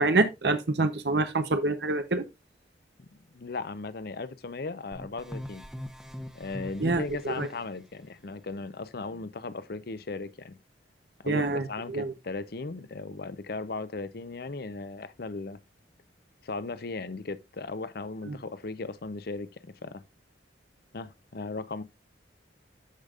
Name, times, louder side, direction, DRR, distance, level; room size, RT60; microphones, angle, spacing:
voice 1, 0.0-2.2 6.8-7.5 11.3-12.1 18.3-18.4, right 2 dB, 65° right, 0.8 m, -26 dB
voice 2, 3.3-5.6 6.3-10.6 11.2-15.6 16.4-20.0 20.9-21.8, left 3 dB, 60° left, 0.6 m, -37 dB
sound 1, 4.9-7.6, equal, 5° right, 0.7 m, -41 dB
13.0 x 5.1 x 2.4 m
head